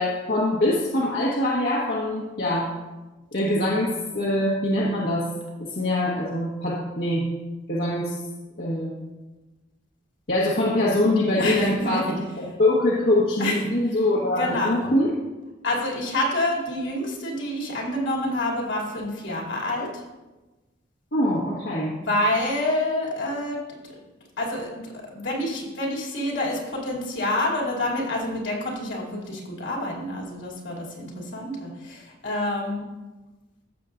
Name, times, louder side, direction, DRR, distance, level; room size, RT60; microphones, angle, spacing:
voice 1, 0.0-2.7 3.3-5.3 5.6-7.3 7.7-8.2 8.6-8.9 10.3-15.1 21.1-21.9, left 1 dB, 55° left, -6 dB, 1.3 m, -23 dB
voice 2, 11.4-12.0 13.4-13.6 14.4-14.9 15.6-19.9 21.9-23.6 24.4-24.9 25.1-32.8, left 1 dB, 75° left, -3 dB, 2.8 m, -27 dB
15.0 x 6.9 x 2.5 m, 1.1 s
head